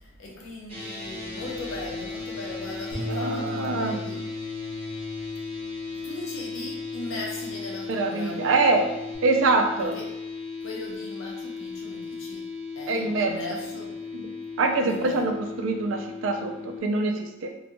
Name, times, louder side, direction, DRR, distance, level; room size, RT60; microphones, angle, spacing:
voice 1, 0.0-4.2 6.0-8.5 9.8-10.1 10.6-12.4 12.8-13.9 14.8-15.3, left 2 dB, 85° left, -2 dB, 0.7 m, -38 dB
sound 1, 0.7-16.8, left 4 dB, 30° right, 0.7 m, -36 dB
Bass guitar, 2.9-9.2, equal, 5° right, 1.0 m, -40 dB
voice 2, 3.1-3.9 7.9-8.9 9.2-10.0 12.9-13.4 14.1-14.3 14.6-17.5, right 3 dB, 70° right, 3 dB, 0.4 m, -24 dB
2.5 x 2.2 x 2.6 m, 0.90 s
head